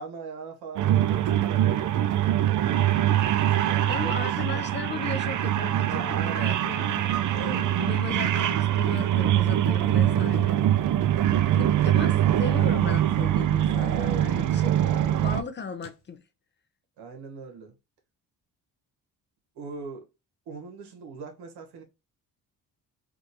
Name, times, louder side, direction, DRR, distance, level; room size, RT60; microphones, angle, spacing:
voice 1, 0.0-2.0 3.2-3.3 3.7-4.6 5.9-6.6 14.0-14.4 17.0-17.7 19.5-20.1 20.5-21.8, right 5 dB, 90° right, 1.3 m, -40 dB
sound 1, 0.8-15.4, right 12 dB, 50° right, 0.4 m, -23 dB
voice 2, 3.9-7.5 7.8-10.9 11.5-16.2, left 5 dB, 30° left, 0.4 m, -37 dB
sound 2, 7.3-8.1 8.5-8.7 9.1-9.2 9.5-9.6 9.8-11.9 12.3-12.7 13.6-14.4 14.8-15.2 15.8-16.0, left 5 dB, 85° left, 1.3 m, -43 dB
3.7 x 2.5 x 2.8 m
cardioid pair, 115°, 39 cm